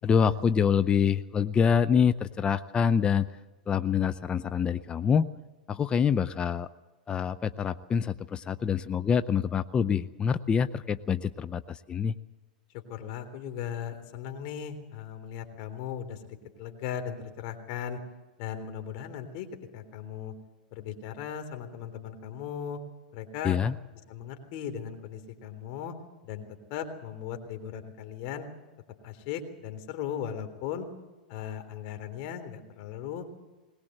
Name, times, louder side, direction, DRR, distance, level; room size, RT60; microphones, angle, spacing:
voice 1, 0.0-3.3 3.7-5.3 5.7-6.7 7.1-12.2 23.4-23.7, left 7 dB, 20° left, 13 dB, 0.6 m, -26 dB
voice 2, 12.9-18.0 18.4-19.5 19.7-20.3 20.7-22.8 23.1-23.6 24.1-25.9 26.2-26.4 26.7-28.5 29.0-30.9 31.3-33.3, left 9 dB, 50° left, 7 dB, 3.5 m, -37 dB
21.0 x 19.0 x 7.9 m, 1.2 s
hypercardioid pair, 110°, 5 cm